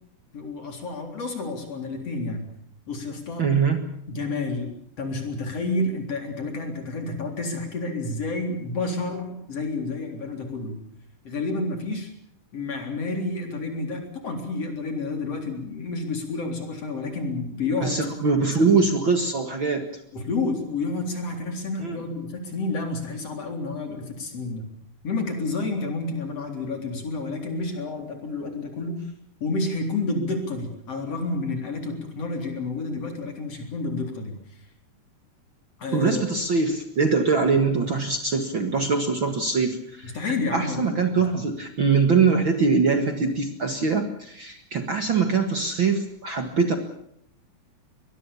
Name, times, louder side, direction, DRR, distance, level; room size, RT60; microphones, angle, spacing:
voice 1, 0.3-2.4 2.9-3.5 4.1-4.7 5.0-10.8 11.2-12.1 12.5-18.8 20.1-24.7 25.0-29.1 29.4-34.6 35.8-36.2 40.0-41.0 41.3-41.4, left 3 dB, 50° left, 4 dB, 4.7 m, -30 dB
voice 2, 3.4-3.8 17.8-19.9 21.8-22.0 35.9-40.2 40.5-46.8, right 4 dB, 45° right, 6 dB, 2.1 m, -23 dB
23.0 x 21.5 x 7.1 m, 0.69 s
omnidirectional pair, 3.7 m